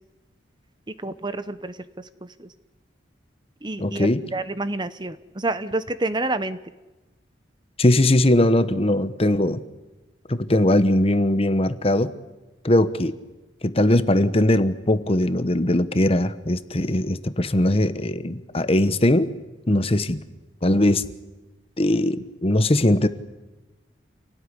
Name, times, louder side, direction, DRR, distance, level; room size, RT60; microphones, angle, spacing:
voice 1, 1.0-1.7 2.4-2.5 3.6-6.6, right 2 dB, 25° right, 13 dB, 0.9 m, -28 dB
voice 2, 3.8-4.2 7.8-9.6 10.3-12.1 12.6-13.1 13.6-19.3 19.7-20.2 20.6-21.1 21.8-23.1, left 1 dB, 30° left, 13 dB, 1.1 m, -20 dB
27.5 x 18.0 x 9.9 m, 1.1 s
head